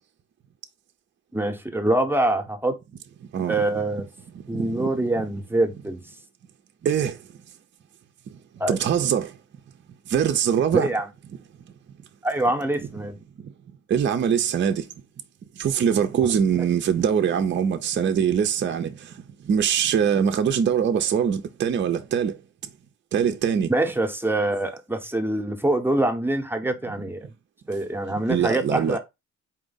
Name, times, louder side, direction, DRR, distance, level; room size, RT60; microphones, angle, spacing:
voice 1, 1.3-2.7 3.5-4.0 4.5-6.0 8.6-8.8 10.7-11.1 12.2-13.2 23.7-27.3 27.7-29.0, right 1 dB, 5° right, 0.8 m, -24 dB
voice 2, 4.5-4.9 6.8-7.1 8.7-9.3 10.1-10.9 13.9-14.8 15.6-18.9 19.5-22.4 23.1-23.7 28.3-29.0, right 8 dB, 40° right, 0.5 m, -22 dB
4.3 x 2.5 x 3.8 m
cardioid pair, 90°, 30 cm